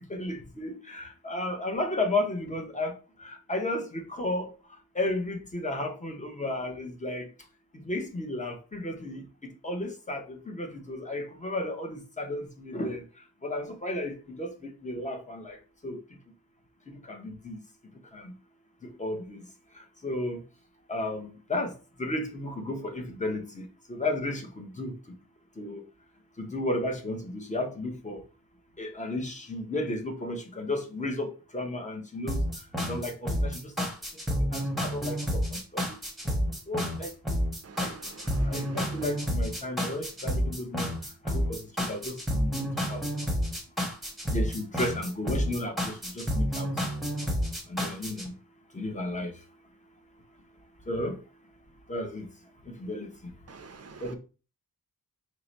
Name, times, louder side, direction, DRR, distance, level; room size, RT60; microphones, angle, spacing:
voice 1, 0.1-4.5 4.9-7.3 7.7-9.2 9.6-16.0 16.9-17.6 18.1-18.3 18.8-19.4 19.7-20.4 20.9-25.0 25.6-25.8 26.4-28.2 28.8-32.5 32.8-33.9 34.5-35.9 36.7-37.1 37.8-37.9 38.4-40.9 41.3-43.0 44.3-46.7 47.7-48.3 48.7-49.3 50.9-51.2 51.9-52.3 52.6-53.3 54.0-54.2, left 1 dB, 20° left, 0.8 m, -33 dB
sound 1, 32.3-48.3, equal, ahead, 1.0 m, -30 dB
voice 2, 37.6-38.8 53.5-54.0, right 4 dB, 40° right, 0.6 m, -47 dB
4.7 x 2.1 x 4.0 m
wide cardioid pair, 155°, 38 cm